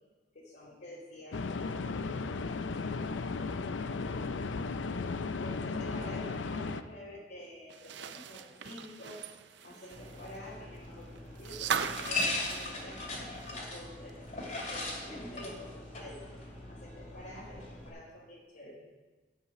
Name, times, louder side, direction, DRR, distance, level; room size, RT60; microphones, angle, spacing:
voice 1, 0.3-2.7 5.4-9.3 9.6-13.0 13.5-16.3 16.7-18.8, left 1 dB, 60° left, -7 dB, 3.0 m, -48 dB
sound 1, 1.3-6.8, left 4 dB, 80° left, 0.5 m, -35 dB
sound 2, 7.7-13.8 14.1-14.2 15.6-15.7, right 7 dB, 65° right, 0.6 m, -39 dB
sound 3, 9.9-17.9, left 2 dB, 45° left, 2.5 m, -39 dB
12.0 x 8.4 x 5.8 m, 1.3 s
head